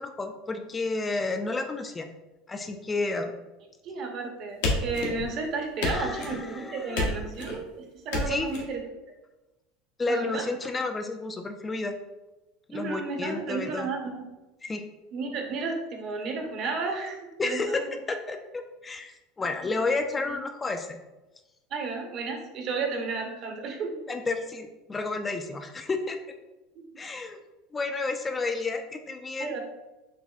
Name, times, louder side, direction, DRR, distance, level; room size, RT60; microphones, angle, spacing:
voice 1, 0.0-2.1 2.5-3.3 5.9-7.2 8.3-8.5 10.0-12.0 12.7-13.9 14.6-14.8 17.4-17.8 18.1-21.0 24.1-26.2 27.0-27.4 27.7-29.5, left 3 dB, 20° left, 6 dB, 0.3 m, -31 dB
voice 2, 3.8-8.8 10.1-10.4 12.7-14.2 15.1-18.0 21.7-24.0 26.8-26.9 29.4-29.6, right 4 dB, 50° right, 2 dB, 0.8 m, -33 dB
sound 1, 4.6-5.4 5.8-6.4 6.9-7.6 8.1-8.6, left 2 dB, 80° left, 0.9 m, -29 dB
5.9 x 2.1 x 2.4 m, 1.1 s
supercardioid pair, 100°, 0 cm